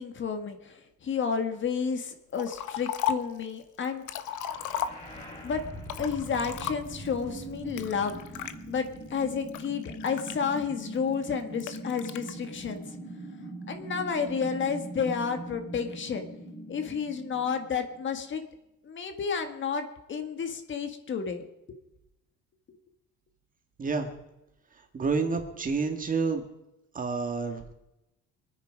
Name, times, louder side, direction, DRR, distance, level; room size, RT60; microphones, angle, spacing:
voice 1, 0.0-4.0 5.4-5.6 6.0-8.2 8.7-12.8 13.7-16.3 16.7-18.4 18.8-21.4, left 6 dB, 40° left, 7 dB, 1.6 m, -31 dB
Liquid, 2.4-3.4 3.8-5.4 5.8-7.1 7.8-8.5 9.1-10.8 11.6-12.3, left 9 dB, 70° left, 1.1 m, -35 dB
sound 1, 4.4-18.4, right 1 dB, 20° left, 4.8 m, -42 dB
voice 2, 23.8-24.1 24.9-26.4 27.0-27.7, right 4 dB, 25° right, 5 dB, 1.9 m, -29 dB
24.0 x 9.7 x 5.1 m, 0.92 s
cardioid pair, 160°, 31 cm